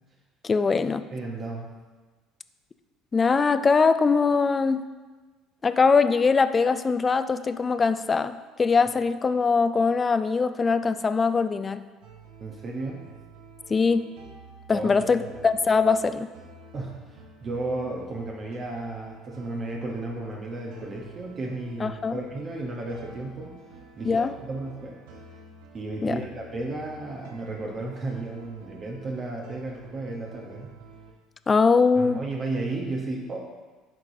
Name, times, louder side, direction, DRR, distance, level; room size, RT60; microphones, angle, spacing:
voice 1, 0.4-1.1 3.1-4.9 5.6-11.8 13.7-14.2 14.7-16.3 21.8-22.2 24.1-24.3 26.0-26.2 31.5-32.2, left 4 dB, 30° left, 12 dB, 0.3 m, -22 dB
voice 2, 1.1-1.7 12.4-13.0 14.7-15.3 16.7-23.6 24.0-25.0 25.7-30.7 32.0-33.5, right 2 dB, 40° right, -1 dB, 0.8 m, -34 dB
sound 1, 12.0-31.1, right 4 dB, 85° right, 0.9 m, -49 dB
11.0 x 4.0 x 2.7 m, 1.3 s
supercardioid pair, 80°, 0 cm